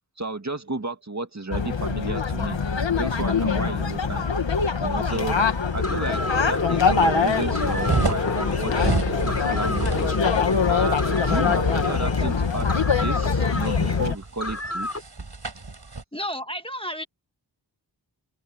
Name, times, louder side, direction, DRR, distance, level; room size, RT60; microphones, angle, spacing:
voice 1, 0.2-2.6 3.0-4.3 4.8-5.4 5.7-9.0 9.3-10.2 10.7-15.1, right 2 dB, 40° right, 1.9 m, -32 dB
sound 1, 1.5-14.2, left 5 dB, 85° left, 1.7 m, -24 dB
sound 2, 5.1-15.0, left 2 dB, 35° left, 7.8 m, -31 dB
sound 3, 7.3-16.0, right 3 dB, 65° right, 7.5 m, -32 dB
voice 2, 16.1-17.0, equal, 10° left, 1.5 m, -31 dB
open air
wide cardioid pair, 60°, 43 cm